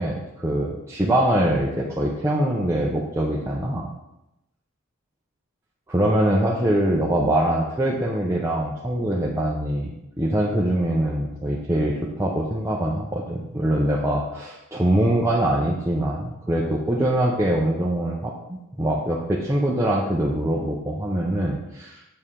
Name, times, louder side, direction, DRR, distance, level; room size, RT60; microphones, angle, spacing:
voice 1, 0.0-3.9 5.9-22.0, right 1 dB, 15° right, -4 dB, 0.6 m, -23 dB
6.6 x 4.7 x 3.7 m, 0.90 s
head